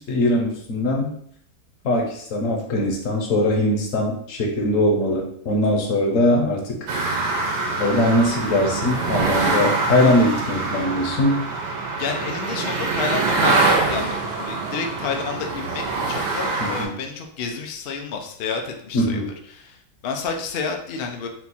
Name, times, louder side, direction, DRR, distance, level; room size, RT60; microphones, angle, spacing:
voice 1, 0.1-1.1 1.8-6.8 7.8-11.4 16.6-16.9 18.9-19.3, left 1 dB, 60° left, 0 dB, 1.1 m, -21 dB
sound 1, 6.9-16.9, right 3 dB, 85° right, 1.4 m, -24 dB
voice 2, 12.0-21.3, left 5 dB, 85° left, 3 dB, 0.5 m, -30 dB
4.3 x 2.3 x 4.1 m, 0.65 s
omnidirectional pair, 1.7 m